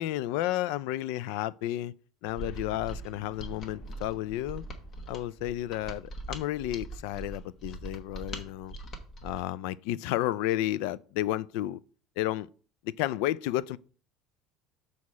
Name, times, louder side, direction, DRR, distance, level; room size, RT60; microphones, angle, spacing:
voice 1, 0.0-1.9 2.2-4.6 5.1-8.7 9.2-11.8 12.2-12.5 13.0-13.8, left 14 dB, 70° left, 0.3 m, -32 dB
Mechanisms, 2.3-9.5, right 1 dB, 30° left, 1.0 m, -42 dB
Boom, 2.4-6.8, left 2 dB, 55° left, 1.8 m, -50 dB
6.5 x 4.2 x 6.1 m
cardioid pair, 170°, 0 cm